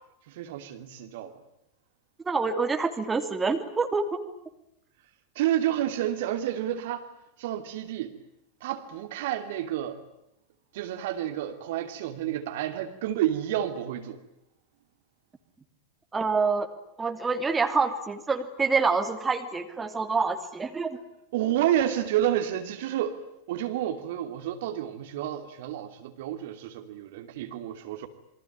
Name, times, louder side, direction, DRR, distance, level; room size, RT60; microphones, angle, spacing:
voice 1, 0.3-1.3 5.4-7.0 7.4-8.1 8.6-10.0 10.7-14.2 21.3-23.2 23.5-28.1, right 11 dB, 55° right, 7 dB, 2.8 m, -30 dB
voice 2, 2.2-4.2 16.1-16.7 17.0-21.0, right 4 dB, 15° right, 6 dB, 2.8 m, -26 dB
28.0 x 23.5 x 8.9 m, 0.82 s
figure-of-eight pair, 90°, 0 cm